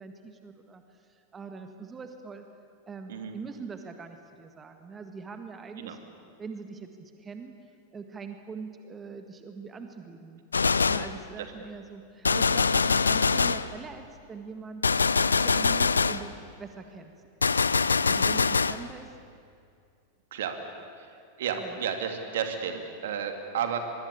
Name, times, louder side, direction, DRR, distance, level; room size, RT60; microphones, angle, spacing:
voice 1, 0.0-2.5 2.9-6.0 6.4-7.5 7.9-10.4 10.9-14.0 14.3-14.9 15.4-17.1 18.1-19.1 21.6-21.8, right 5 dB, 20° right, 6 dB, 1.7 m, -42 dB
Gunshot gunfire, 10.5-11.2 12.2-13.7 14.8-16.3 17.4-18.8, left 4 dB, 75° left, 0.6 m, -24 dB
voice 2, 21.4-23.8, right 8 dB, 60° right, 6 dB, 2.5 m, -32 dB
23.5 x 23.5 x 8.5 m, 2.4 s
figure-of-eight pair, 90°, 0 cm